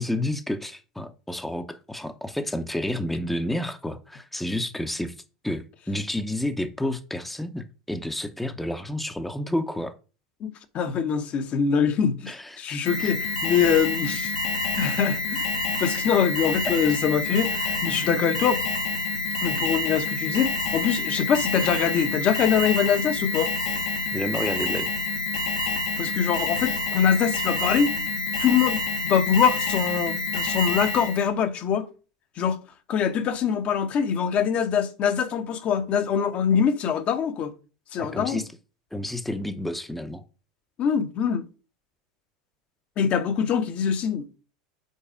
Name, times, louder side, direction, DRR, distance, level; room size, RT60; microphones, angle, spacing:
voice 1, 0.0-5.1 5.4-9.9 12.3-13.1 21.7-21.9 24.1-24.9 38.0-38.5 38.9-40.2, left 1 dB, 5° left, 0.7 m, -30 dB
voice 2, 10.4-14.3 14.8-15.5 15.8-18.6 19.4-23.5 26.0-27.9 28.4-31.9 32.4-32.6 32.9-37.5 37.9-38.4 40.8-41.5 43.0-44.4, left 7 dB, 45° left, 0.9 m, -24 dB
Alarm, 12.9-31.3, left 3 dB, 80° left, 1.3 m, -28 dB
5.5 x 4.1 x 4.9 m
hypercardioid pair, 80°, 3 cm